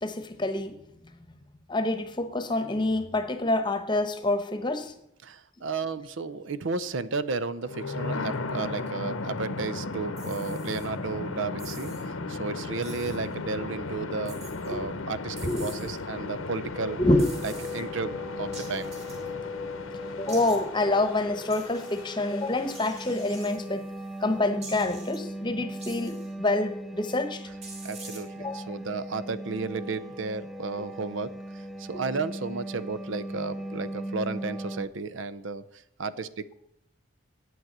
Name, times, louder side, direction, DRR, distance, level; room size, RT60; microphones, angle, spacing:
voice 1, 0.0-0.8 1.7-4.9 14.7-14.8 15.4-15.7 17.0-17.2 20.2-23.8 24.2-27.4 28.4-28.8, left 2 dB, 20° left, 1.0 m, -27 dB
voice 2, 5.2-14.4 14.6-17.0 17.4-18.9 27.8-31.3 31.8-35.6 36.0-36.5, right 4 dB, 70° right, 0.6 m, -33 dB
sound 1, 7.6-23.5, left 3 dB, 90° left, 1.0 m, -36 dB
sound 2, 10.2-10.9 11.6-12.0 12.8-13.2 14.2-14.7 15.4-16.0 17.2-17.8 18.5-19.3 20.3-20.6 21.5-22.0 22.7-23.5 24.6-25.2 25.8-26.3 27.6-28.2, right 3 dB, 30° right, 2.6 m, -46 dB
sound 3, 16.7-34.9, equal, ahead, 0.5 m, -39 dB
9.3 x 9.2 x 7.3 m
head